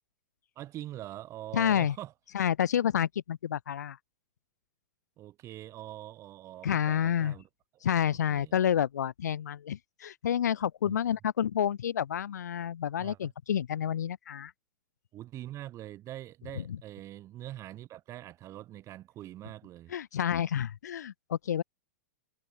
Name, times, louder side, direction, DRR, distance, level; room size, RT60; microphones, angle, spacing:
voice 1, 0.6-2.1 5.2-7.5 7.7-8.6 10.8-11.2 13.0-13.3 15.1-19.9, right 14 dB, 35° right, 2.4 m, -44 dB
voice 2, 1.5-1.9 2.3-4.0 6.6-7.3 7.8-14.5 19.9-21.6, left 9 dB, 85° left, 0.4 m, -29 dB
hypercardioid pair, 110°, 9 cm